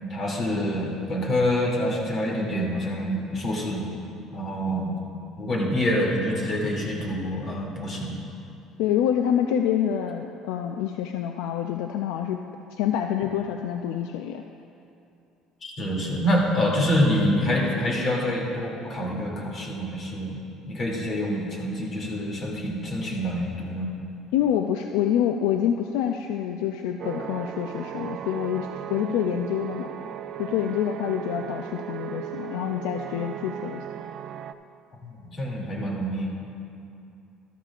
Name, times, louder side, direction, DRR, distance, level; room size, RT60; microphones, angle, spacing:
voice 1, 0.0-3.9 4.3-5.0 5.4-8.1 15.6-20.4 20.7-23.9 35.0-36.3, equal, 40° left, -2 dB, 2.6 m, -26 dB
voice 2, 8.8-12.4 12.7-14.4 24.3-29.9 30.4-33.8, left 9 dB, 90° left, 5 dB, 0.4 m, -26 dB
sound 1, 27.0-34.5, right 10 dB, 55° right, 0.3 m, -36 dB
13.0 x 13.0 x 2.5 m, 2.6 s
cardioid pair, 120°, 0 cm